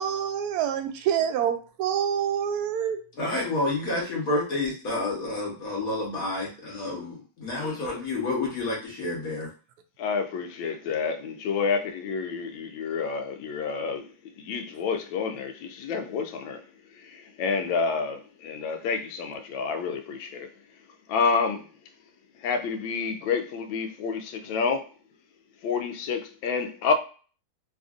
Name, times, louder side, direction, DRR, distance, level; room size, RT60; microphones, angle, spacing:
voice 1, 0.0-3.0, right 9 dB, 85° right, 0.8 m, -26 dB
voice 2, 3.2-9.5, left 2 dB, 50° left, 1.3 m, -29 dB
voice 3, 7.6-8.0 10.0-20.8 21.1-21.7 22.3-24.9 25.6-26.9, left 5 dB, 75° left, 1.3 m, -29 dB
3.4 x 2.5 x 2.4 m
omnidirectional pair, 2.2 m